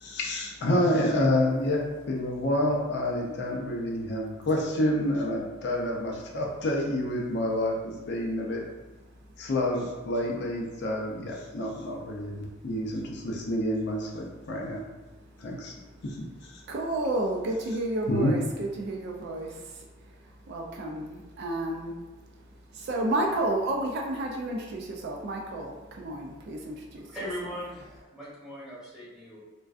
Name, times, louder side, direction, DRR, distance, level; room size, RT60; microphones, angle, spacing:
voice 1, 0.0-7.7 8.1-8.7 9.4-14.8 15.4-15.7 16.0-16.2 16.4-16.6 18.1-18.3, left 1 dB, 60° left, -1 dB, 0.4 m, -28 dB
voice 2, 16.7-19.8 20.5-22.0 22.7-27.1, right 1 dB, 55° right, 0 dB, 0.3 m, -31 dB
voice 3, 27.0-29.4, equal, ahead, -10 dB, 1.0 m, -39 dB
2.4 x 2.2 x 2.3 m, 1.2 s
head